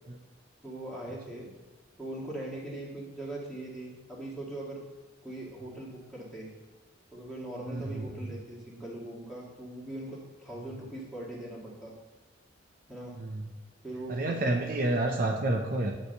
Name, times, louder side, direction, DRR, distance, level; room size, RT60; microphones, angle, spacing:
voice 1, 0.6-1.5 2.0-4.8 5.2-6.5 7.1-11.9 12.9-13.1 13.8-14.7, right 1 dB, ahead, -7 dB, 1.9 m, -40 dB
voice 2, 7.7-8.0 13.1-13.5 14.1-15.9, right 2 dB, 45° right, 1 dB, 0.7 m, -29 dB
9.6 x 3.3 x 6.6 m, 1.3 s
head